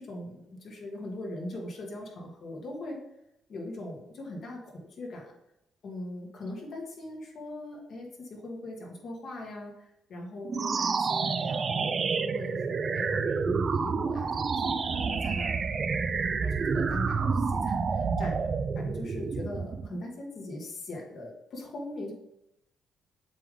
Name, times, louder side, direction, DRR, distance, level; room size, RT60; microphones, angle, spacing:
voice 1, 0.0-3.0 3.5-5.3 5.8-15.6 16.4-18.5 18.7-22.1, left 1 dB, 60° left, -1 dB, 1.9 m, -40 dB
sound 1, 10.4-20.0, right 5 dB, 45° right, 0.4 m, -29 dB
7.5 x 3.7 x 3.7 m, 0.83 s
cardioid pair, 90°, 0 cm